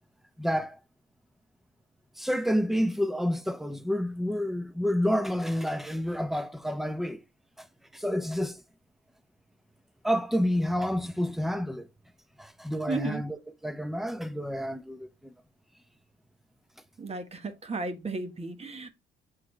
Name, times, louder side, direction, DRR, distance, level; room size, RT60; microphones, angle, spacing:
voice 1, 0.4-0.8 2.2-7.2 7.6-7.7 7.9-8.6 10.0-11.9 12.4-15.3, equal, ahead, 0.7 m, -29 dB
voice 2, 12.9-13.2 17.0-18.9, right 3 dB, 30° right, 1.2 m, -34 dB
6.8 x 4.8 x 3.2 m
cardioid pair, 90°, 20 cm